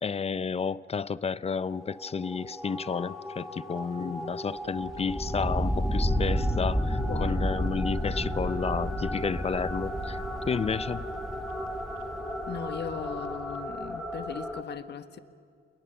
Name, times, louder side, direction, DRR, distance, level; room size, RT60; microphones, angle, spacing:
voice 1, 0.0-11.1, left 5 dB, 30° left, 0.6 m, -31 dB
sound 1, 1.5-14.6, equal, ahead, 2.4 m, -32 dB
sound 2, 2.6-13.6, left 8 dB, 80° left, 1.6 m, -49 dB
voice 2, 4.0-4.3 7.0-7.5 12.5-15.2, left 8 dB, 60° left, 1.5 m, -38 dB
28.0 x 22.0 x 7.0 m
cardioid pair, 90°, 20 cm